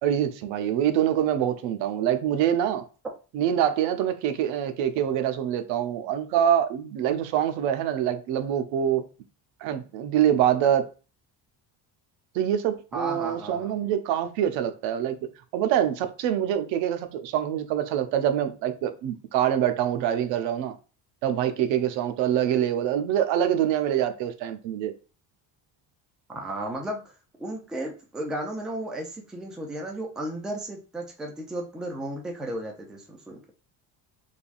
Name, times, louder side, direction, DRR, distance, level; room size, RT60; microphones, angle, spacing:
voice 1, 0.0-2.8 3.3-9.0 9.6-10.9 12.3-15.2 15.5-20.7 21.2-24.9, right 10 dB, 80° right, 0.6 m, -25 dB
voice 2, 12.9-13.7 26.3-27.1 27.4-33.4, right 1 dB, ahead, 0.3 m, -34 dB
3.3 x 2.3 x 2.4 m
cardioid pair, 145°, 44 cm